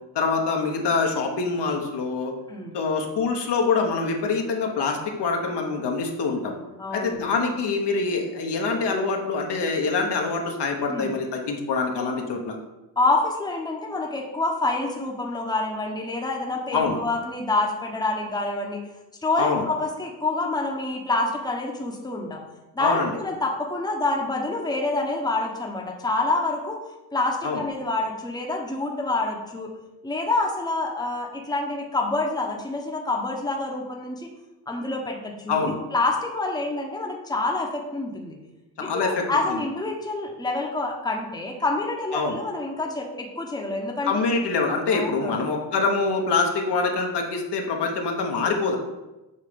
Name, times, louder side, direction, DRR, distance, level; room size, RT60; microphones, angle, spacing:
voice 1, 0.1-2.3 2.7-6.6 6.9-12.6 16.7-17.0 19.4-19.6 22.8-23.1 27.4-27.6 35.5-35.8 38.8-39.2 39.5-39.6 42.1-42.4 44.0-48.8, left 4 dB, 60° left, 1 dB, 1.1 m, -25 dB
voice 2, 6.8-7.2 10.9-11.1 13.0-18.8 19.2-22.4 22.7-26.8 27.1-29.7 30.0-34.3 34.7-38.4 38.8-44.2 44.9-45.4, left 2 dB, 10° left, 0 dB, 1.0 m, -27 dB
6.9 x 2.8 x 5.1 m, 1.0 s
cardioid pair, 75°, 47 cm